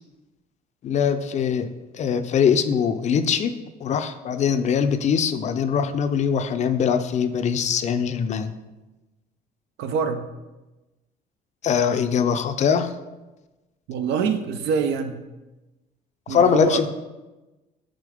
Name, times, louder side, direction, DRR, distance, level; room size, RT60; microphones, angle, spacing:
voice 1, 0.8-1.7 1.9-3.5 3.8-8.5 11.6-12.9 16.3-16.9, left 7 dB, 45° left, 10 dB, 0.4 m, -22 dB
voice 2, 9.8-10.3 13.9-15.2 16.3-16.8, right 6 dB, 85° right, 8 dB, 0.6 m, -25 dB
5.1 x 3.7 x 4.9 m, 1.1 s
cardioid pair, 110°, 17 cm